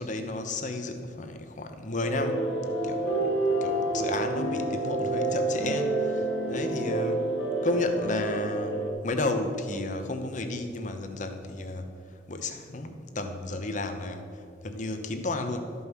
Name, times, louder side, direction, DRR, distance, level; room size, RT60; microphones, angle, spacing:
voice 1, 0.0-2.5 2.8-3.3 3.6-7.3 7.6-11.9 12.3-15.7, left 2 dB, 45° left, 6 dB, 0.9 m, -32 dB
sound 1, 2.0-8.9, right 2 dB, 90° left, 1.6 m, -28 dB
13.0 x 5.5 x 6.3 m, 2.3 s
head